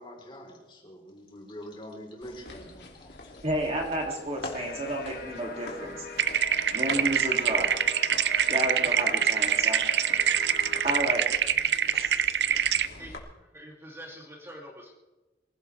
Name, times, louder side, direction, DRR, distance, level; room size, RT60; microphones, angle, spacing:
voice 1, 0.0-3.3, equal, 30° left, 0 dB, 4.1 m, -45 dB
sound 1, 2.2-13.2, left 2 dB, 75° left, 2.8 m, -45 dB
voice 2, 3.4-6.0 6.7-7.7 8.5-9.8 10.5-11.2 11.9-12.3, right 1 dB, 35° right, 0 dB, 2.8 m, -31 dB
sound 2, 4.5-11.1, left 3 dB, 55° left, 1.2 m, -41 dB
sound 3, 6.2-12.9, right 8 dB, 80° right, 0.6 m, -25 dB
voice 3, 13.0-14.9, equal, 15° right, -2 dB, 2.9 m, -45 dB
24.5 x 16.0 x 3.5 m, 1.1 s
head